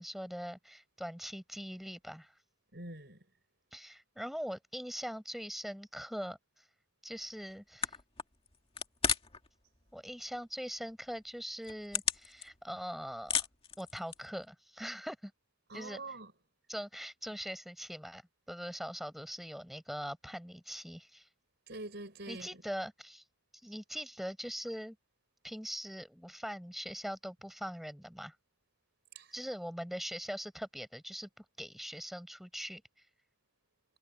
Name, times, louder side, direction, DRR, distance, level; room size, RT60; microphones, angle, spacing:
voice 1, 0.0-2.3 3.7-6.7 7.0-8.0 9.9-13.4 13.8-15.3 15.7-16.0 16.7-18.2 18.5-21.3 22.3-23.2 23.6-25.0 25.4-28.3 29.3-32.8, equal, ahead, 6.0 m, -42 dB
voice 2, 2.7-3.2 15.7-16.3 21.7-22.6 29.2-29.3, right 2 dB, 50° right, 5.5 m, -45 dB
sound 1, 7.5-7.6 7.8-9.5 9.7-10.4 10.8-10.9 11.4-12.8 13.1-14.4, left 7 dB, 25° left, 2.1 m, -34 dB
head